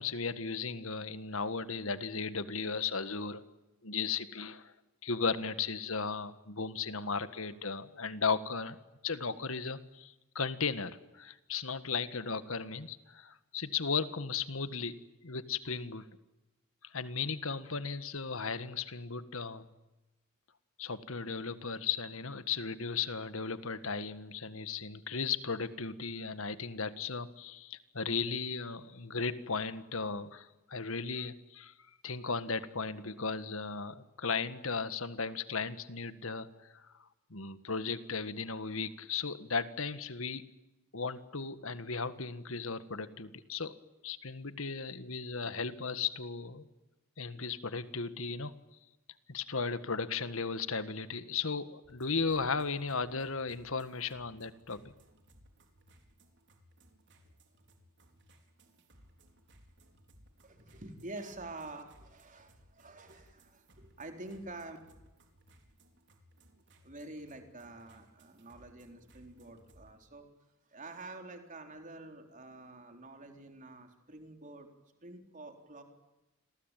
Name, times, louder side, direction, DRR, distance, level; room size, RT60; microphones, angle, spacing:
voice 1, 0.0-3.4 3.8-4.7 5.0-8.8 9.0-14.9 15.2-16.1 16.8-19.7 20.8-31.7 32.0-40.4 40.9-43.7 44.0-46.7 47.2-48.5 49.3-54.9, left 5 dB, 70° left, 12 dB, 1.7 m, -36 dB
sound 1, 51.8-70.0, right 1 dB, 55° right, 4.5 m, -63 dB
voice 2, 60.4-64.8 66.8-70.3 70.6-74.7 75.0-75.8, right 2 dB, 35° right, 5 dB, 3.9 m, -47 dB
29.0 x 22.5 x 9.2 m, 1.0 s
head